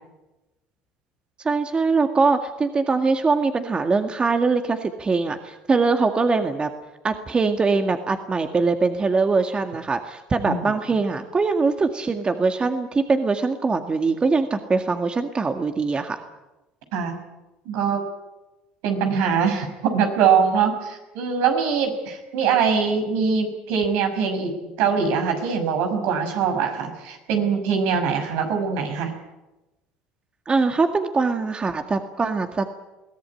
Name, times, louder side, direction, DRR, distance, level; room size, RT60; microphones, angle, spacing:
voice 1, 1.4-6.7 7.0-16.2 30.5-32.7, right 4 dB, 25° right, 6 dB, 2.0 m, -22 dB
voice 2, 17.7-18.0 18.8-29.1, right 6 dB, 75° right, 5 dB, 6.0 m, -22 dB
22.5 x 17.0 x 9.8 m, 1.0 s
supercardioid pair, 85°, 4 cm